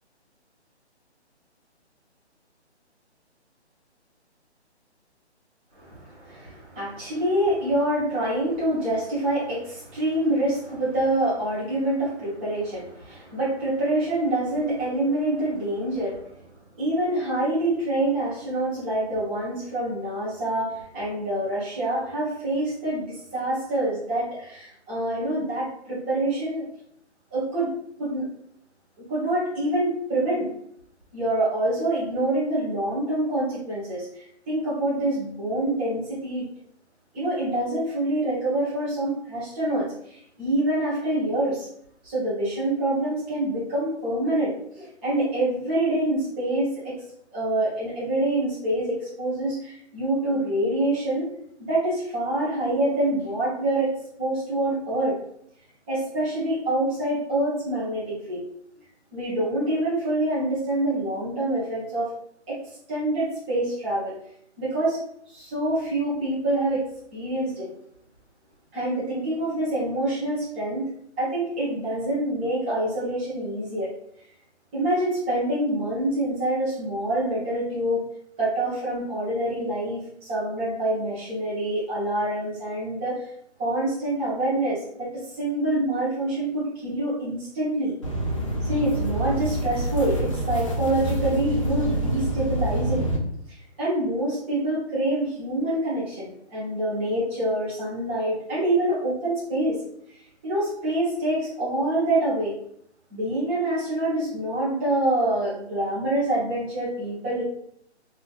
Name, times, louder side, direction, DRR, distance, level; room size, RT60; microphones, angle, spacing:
voice 1, 5.7-16.3 16.8-26.6 27.3-27.7 28.0-28.2 29.0-30.5 31.1-36.5 37.1-41.7 42.0-47.0 47.3-51.3 51.7-53.9 54.2-55.2 55.9-58.4 59.1-62.1 62.5-62.6 62.9-64.1 64.6-65.0 65.3-66.9 67.1-67.7 68.7-70.9 71.2-73.9 74.7-78.1 78.4-83.3 83.6-87.9 88.6-93.1 93.5-99.8 100.4-102.6 103.1-107.4, right 1 dB, 10° right, -9 dB, 0.7 m, -26 dB
sound 1, 88.0-93.2, right 1 dB, 30° left, 0.4 m, -26 dB
4.3 x 2.4 x 2.3 m, 0.70 s
hypercardioid pair, 155°, 34 cm